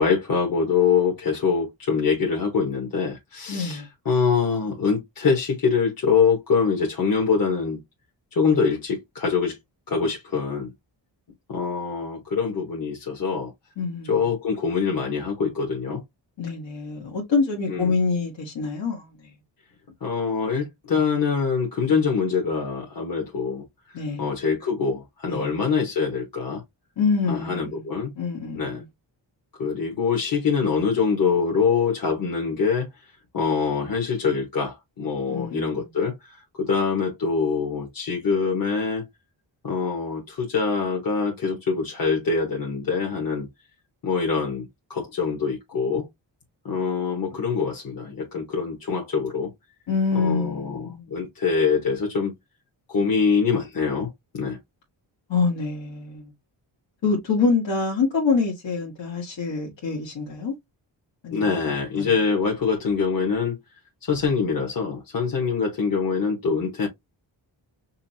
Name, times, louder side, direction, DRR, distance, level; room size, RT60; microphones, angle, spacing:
voice 1, 0.0-7.8 8.3-9.6 9.9-10.7 11.5-13.5 14.0-16.0 17.7-17.9 20.0-23.6 24.2-26.6 27.3-28.1 28.5-28.8 29.6-32.9 33.3-39.1 39.6-43.5 44.0-46.1 46.6-49.5 50.1-52.3 52.9-54.6 61.3-63.6 64.0-66.9, left 5 dB, 45° left, 1.3 m, -24 dB
voice 2, 3.5-3.9 13.8-14.2 16.4-19.1 23.9-24.3 25.3-25.6 27.0-27.8 28.2-28.8 35.3-35.9 49.9-51.1 55.3-56.3 57.0-60.5 61.2-61.6 62.0-62.1, left 4 dB, 70° left, 1.4 m, -26 dB
5.5 x 2.1 x 2.7 m
cardioid pair, 65°, 46 cm